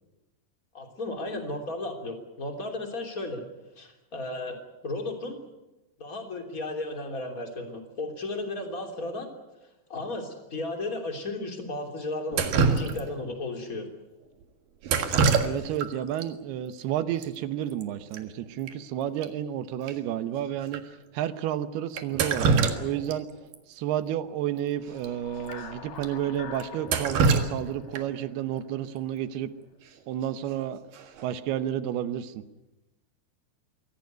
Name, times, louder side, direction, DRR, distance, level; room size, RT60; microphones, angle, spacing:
voice 1, 0.7-3.4 3.8-5.4 6.0-9.3 9.9-13.9, left 2 dB, 20° left, 4 dB, 3.2 m, -34 dB
Drip, 12.3-13.3 14.8-15.9 16.2-16.3 17.2-17.3 17.6-17.8 18.1-18.2 18.7-18.8 19.2-19.3 19.9-20.0 20.7-20.8 22.0-23.2 23.5-23.6 25.0-25.1 25.5-25.6 26.0-26.1 26.6-28.2 30.2-30.5 30.9-31.3, right 5 dB, 60° right, 3.1 m, -25 dB
voice 2, 15.4-23.3 23.7-29.5 30.1-30.8 31.2-32.4, right 11 dB, 75° right, 12 dB, 2.9 m, -31 dB
sound 1, 24.7-29.0, left 6 dB, 50° left, 3.0 m, -44 dB
24.5 x 17.0 x 9.4 m, 1.0 s
omnidirectional pair, 4.7 m